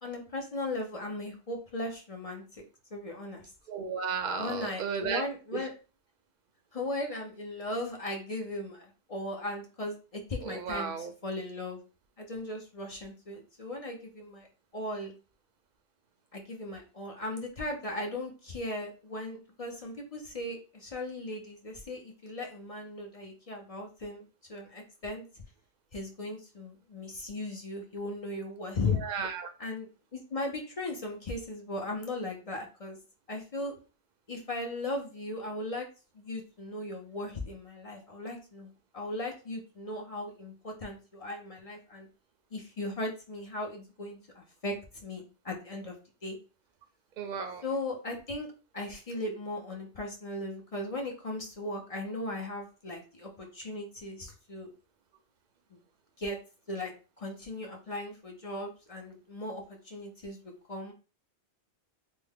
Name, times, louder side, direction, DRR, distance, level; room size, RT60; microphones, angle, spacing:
voice 1, 0.0-2.6 2.9-3.4 4.4-5.7 6.7-11.8 12.2-14.5 14.7-15.1 16.3-25.2 25.9-29.0 29.6-33.0 33.3-33.7 34.3-35.9 36.1-42.1 42.5-46.0 46.2-46.4 47.6-48.5 48.7-54.7 55.7-55.8 56.2-56.4 56.7-56.9 57.2-60.4 60.7-60.9, left 2 dB, 40° left, 1 dB, 0.6 m, -37 dB
voice 2, 3.7-5.2 5.5-5.7 10.4-11.1 29.0-29.5 47.2-47.6, right 5 dB, 55° right, 6 dB, 0.5 m, -34 dB
3.4 x 2.1 x 3.5 m, 0.34 s
omnidirectional pair, 1.1 m